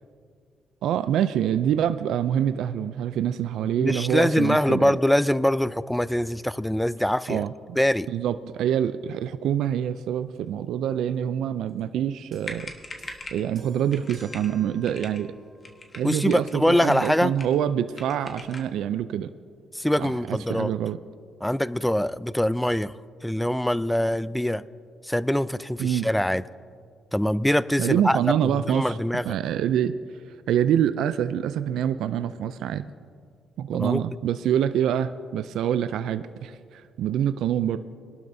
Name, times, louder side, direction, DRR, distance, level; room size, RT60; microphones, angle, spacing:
voice 1, 0.8-4.9 7.3-7.8 8.1-12.7 13.3-15.3 15.9-19.3 20.0-21.0 25.8-26.1 27.8-29.0 29.2-30.0 30.5-32.9 33.6-37.8, right 10 dB, 80° right, 12 dB, 0.3 m, -26 dB
voice 2, 3.8-7.4 7.8-8.1 16.0-17.3 19.7-20.7 21.4-22.9 23.2-24.6 25.0-26.4 27.1-28.2 28.4-29.3 33.8-34.0, left 1 dB, 5° left, 17 dB, 0.3 m, -23 dB
sound 1, 12.2-12.3 12.4-13.5 13.9-14.5 14.8-15.2 15.6-16.5 16.9-17.6 17.9-18.7, left 2 dB, 30° left, 1.4 m, -41 dB
sound 2, 12.3-15.9 16.8-17.0, right 3 dB, 45° right, 2.3 m, -53 dB
22.5 x 12.0 x 2.7 m, 2.2 s
cardioid pair, 90°, 0 cm